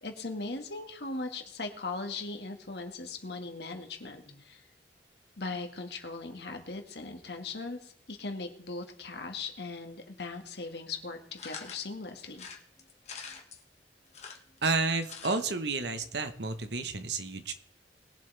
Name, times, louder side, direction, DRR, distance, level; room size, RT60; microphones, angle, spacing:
voice 1, 0.0-4.6 5.4-12.5, left 3 dB, 65° left, 4 dB, 1.8 m, -39 dB
sound 1, 11.4-11.8 12.3-13.6 14.1-15.4 15.7-15.8 16.0-16.1, left 6 dB, 40° left, 1.6 m, -45 dB
voice 2, 14.6-17.5, right 4 dB, 75° right, 9 dB, 1.1 m, -31 dB
21.0 x 7.8 x 3.4 m, 0.67 s
head